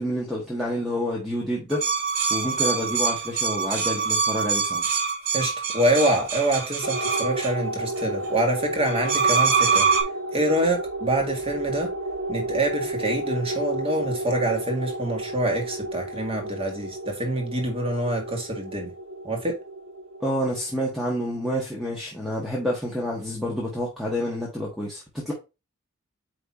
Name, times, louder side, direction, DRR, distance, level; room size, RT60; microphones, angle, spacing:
voice 1, 0.0-1.8 2.3-4.8 20.2-25.3, equal, ahead, 1.4 m, -28 dB
sound 1, 1.7-7.5 8.9-10.0, right 5 dB, 75° right, 2.5 m, -24 dB
voice 2, 5.3-9.9 10.3-11.9 12.3-18.9 19.2-19.6, right 1 dB, 25° right, 1.7 m, -26 dB
sound 2, 6.8-21.6, right 1 dB, 55° right, 1.5 m, -32 dB
8.7 x 3.2 x 4.2 m
head